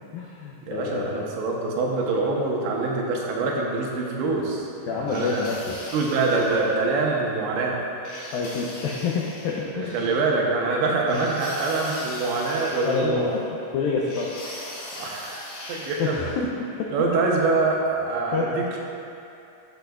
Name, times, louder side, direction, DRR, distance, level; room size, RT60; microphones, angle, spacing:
voice 1, 0.1-1.3 4.9-5.8 8.3-10.1 11.1-11.3 12.8-13.4 13.7-14.3 16.0-17.1 18.3-18.5, left 5 dB, 85° left, -2 dB, 2.0 m, -28 dB
voice 2, 0.7-5.6 5.9-7.8 9.7-13.3 15.0-16.3 16.9-18.8, right 3 dB, 85° right, -2 dB, 3.3 m, -25 dB
sound 1, 5.1-6.8 8.0-9.7 11.1-13.4 14.1-16.2, left 1 dB, 55° left, 2.1 m, -39 dB
13.0 x 8.0 x 2.4 m, 2.6 s
omnidirectional pair, 5.0 m